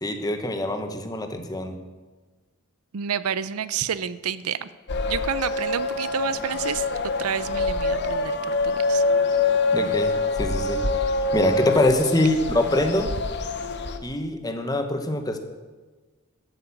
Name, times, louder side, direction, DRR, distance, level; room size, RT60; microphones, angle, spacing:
voice 1, 0.0-1.7 9.7-11.1 11.3-13.1 14.0-15.4, left 1 dB, 20° left, 6 dB, 1.1 m, -24 dB
voice 2, 2.9-4.7 5.1-9.0, right 8 dB, 85° right, 16 dB, 0.5 m, -29 dB
sound 1, 4.9-14.0, left 3 dB, 55° left, 0.9 m, -25 dB
12.0 x 8.6 x 7.2 m, 1.3 s
head